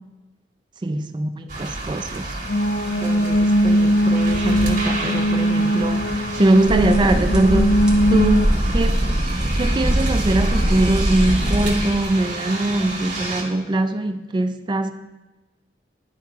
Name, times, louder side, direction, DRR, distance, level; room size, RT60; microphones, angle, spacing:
voice 1, 0.8-2.4 3.0-7.8 8.1-9.0 9.6-14.9, right 2 dB, 25° right, 0.3 m, -22 dB
sound 1, 1.5-13.4, right 2 dB, 45° right, 1.5 m, -30 dB
sound 2, 2.5-8.4, equal, 65° left, 0.4 m, -20 dB
sound 3, 6.7-12.0, equal, 5° right, 0.8 m, -22 dB
11.0 x 4.5 x 2.9 m
head